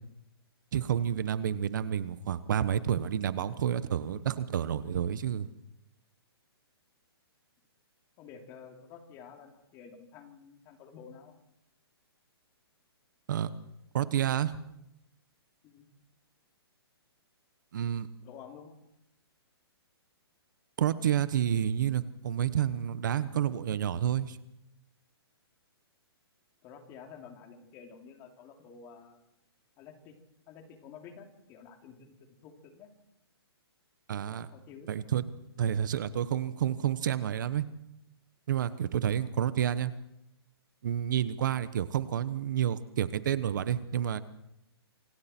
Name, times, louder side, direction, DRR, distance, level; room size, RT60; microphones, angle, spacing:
voice 1, 0.7-5.5 13.3-13.5 13.9-14.6 17.7-18.1 20.8-24.4 34.1-34.5 34.9-35.2 35.6-37.6 38.5-39.9 40.8-44.2, right 9 dB, 50° right, 14 dB, 1.1 m, -29 dB
voice 2, 8.2-11.3 15.6-15.9 18.2-18.7 26.6-29.2 29.8-30.2 30.5-32.9 34.3-34.9 39.1-39.4, left 6 dB, 20° left, 4 dB, 3.0 m, -51 dB
27.0 x 25.0 x 4.5 m, 0.82 s
hypercardioid pair, 165°, 14 cm